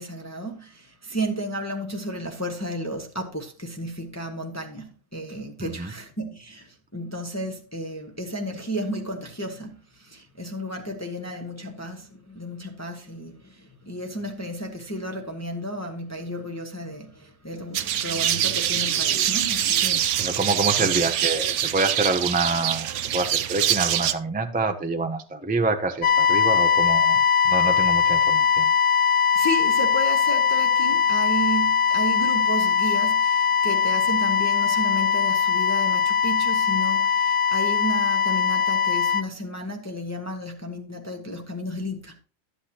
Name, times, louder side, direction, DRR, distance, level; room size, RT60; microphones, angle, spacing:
voice 1, 0.0-20.4 20.8-20.9 29.3-42.2, equal, 15° left, 0.8 m, -33 dB
voice 2, 5.6-5.9 20.2-28.7, right 3 dB, 10° right, 0.4 m, -27 dB
sound 1, 17.7-24.1, right 11 dB, 75° right, 0.9 m, -24 dB
sound 2, 26.0-39.2, left 7 dB, 60° left, 0.5 m, -21 dB
11.5 x 8.2 x 2.9 m
omnidirectional pair, 1.3 m